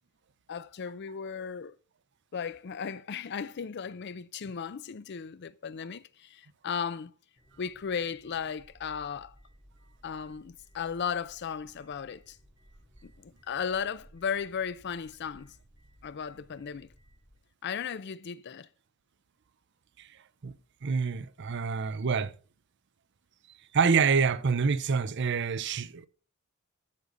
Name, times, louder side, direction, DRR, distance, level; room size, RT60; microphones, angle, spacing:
voice 1, 0.5-1.7 2.3-7.1 7.6-9.3 10.0-12.4 13.0-15.5 16.0-16.9 17.6-18.7, left 6 dB, 55° left, 0.5 m, -36 dB
sound 1, 7.4-17.4, equal, 15° right, 2.9 m, -59 dB
voice 2, 20.8-22.3 23.7-26.1, right 5 dB, 55° right, 0.6 m, -27 dB
13.0 x 6.6 x 3.8 m
head